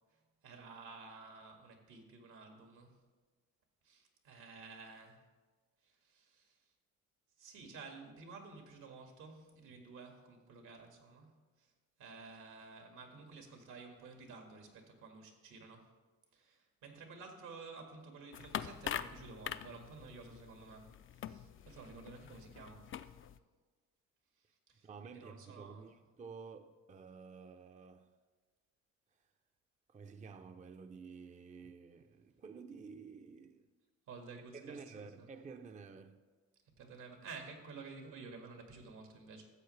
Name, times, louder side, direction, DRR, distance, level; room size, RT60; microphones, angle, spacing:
voice 1, 0.4-2.9 3.8-5.2 6.0-6.5 7.4-11.3 12.0-15.9 16.3-20.9 21.2-22.9 24.7-25.9 34.1-35.3 36.8-39.5, right 4 dB, 85° right, 1.8 m, -52 dB
sound 1, 18.3-23.4, left 9 dB, 45° left, 0.4 m, -44 dB
voice 2, 24.8-28.1 29.9-33.7 34.5-36.2, right 5 dB, 25° right, 0.5 m, -51 dB
13.5 x 7.7 x 3.2 m
cardioid pair, 90°, 30 cm